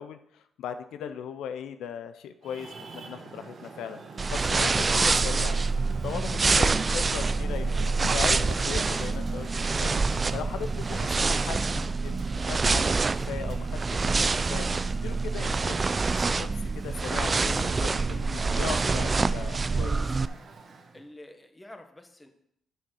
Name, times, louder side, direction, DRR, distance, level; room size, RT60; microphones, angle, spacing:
voice 1, 0.0-4.0 4.3-5.6 6.0-10.0 10.3-14.7 15.0-15.9 16.1-16.5 16.7-20.0, left 8 dB, 85° left, 10 dB, 0.5 m, -38 dB
Traffic noise roadway noise, 2.4-21.1, right 4 dB, 50° right, 1.3 m, -46 dB
sound 1, 4.2-20.3, right 4 dB, 30° right, 0.4 m, -26 dB
voice 2, 20.9-22.3, left 1 dB, 15° left, 6 dB, 1.2 m, -48 dB
7.5 x 6.4 x 6.2 m, 0.75 s
cardioid pair, 80°, 0 cm